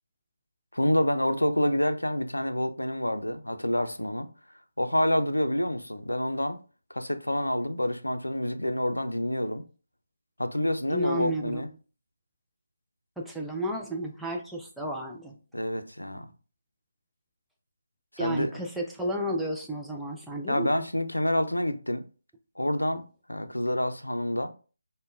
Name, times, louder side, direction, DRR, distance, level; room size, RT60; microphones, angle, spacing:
voice 1, 0.7-4.3 4.8-6.6 6.9-9.6 10.4-11.7 15.5-16.3 18.2-18.5 20.5-22.0 22.6-24.5, left 1 dB, 85° left, 0.5 m, -28 dB
voice 2, 10.9-11.6 13.2-15.4 18.2-20.7, right 1 dB, ahead, 0.4 m, -32 dB
5.1 x 2.2 x 2.5 m
figure-of-eight pair, 150°, 0 cm